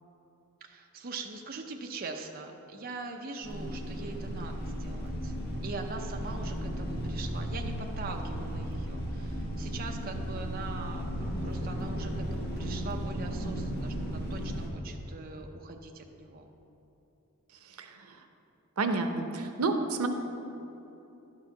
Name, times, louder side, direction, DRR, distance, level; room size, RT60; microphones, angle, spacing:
voice 1, 0.6-5.3 5.6-16.5, right 4 dB, 45° right, 2 dB, 0.6 m, -42 dB
sound 1, 3.4-14.7, equal, 45° left, 1.4 m, -35 dB
voice 2, 17.6-18.2 18.8-20.1, right 3 dB, 85° right, 6 dB, 0.8 m, -30 dB
11.5 x 4.8 x 7.0 m, 3.0 s
head